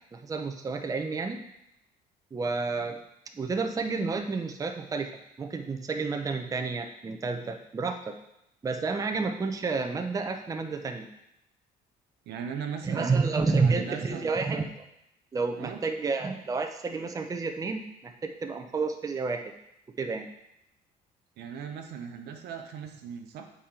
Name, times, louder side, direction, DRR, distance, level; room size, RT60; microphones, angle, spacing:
voice 1, 0.1-1.4 2.3-3.0 3.3-5.1 5.4-8.2 8.6-11.1 12.8-14.8 15.3-19.4 20.0-20.3, right 4 dB, 20° right, 5 dB, 0.5 m, -30 dB
voice 2, 12.3-13.1 13.5-14.3 15.6-15.8 21.4-23.5, right 7 dB, 75° right, 5 dB, 0.8 m, -38 dB
7.1 x 4.3 x 3.7 m, 0.82 s
cardioid pair, 110°, 17 cm